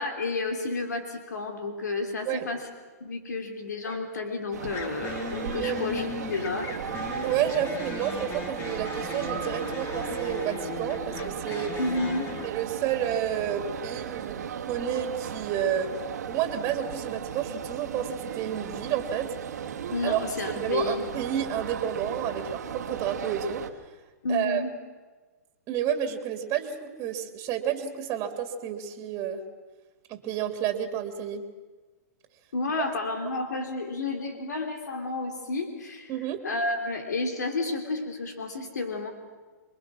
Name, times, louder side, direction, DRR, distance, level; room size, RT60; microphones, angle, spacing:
voice 1, 0.0-2.6 3.0-6.7 11.8-12.3 19.9-21.0 24.2-24.7 32.5-36.1 36.4-39.1, left 3 dB, 85° left, 4 dB, 3.1 m, -31 dB
sound 1, 3.8-4.1 4.7-12.5, left 5 dB, 30° left, 2.7 m, -38 dB
sound 2, 4.5-23.7, right 8 dB, 75° right, 1.9 m, -36 dB
voice 2, 7.2-11.8 12.4-14.4 14.7-15.9 16.3-19.3 20.0-23.6 24.3-24.6 25.7-29.4 30.1-31.4 33.2-33.3 36.1-36.4, right 9 dB, 35° right, 5 dB, 2.5 m, -30 dB
26.5 x 22.0 x 6.3 m, 1.3 s
hypercardioid pair, 130°, 9 cm